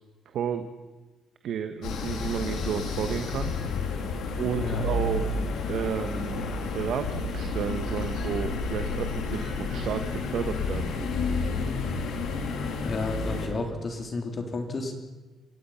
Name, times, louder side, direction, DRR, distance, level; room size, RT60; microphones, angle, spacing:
voice 1, 0.3-0.7 1.4-3.5 4.4-10.9, right 8 dB, 70° right, 8 dB, 1.3 m, -32 dB
sound 1, 1.8-13.5, left 3 dB, 80° left, 3.2 m, -30 dB
voice 2, 4.6-4.9 12.8-14.9, left 3 dB, 40° left, 4 dB, 3.5 m, -32 dB
27.5 x 17.0 x 5.8 m, 1.2 s
cardioid pair, 90°, 0 cm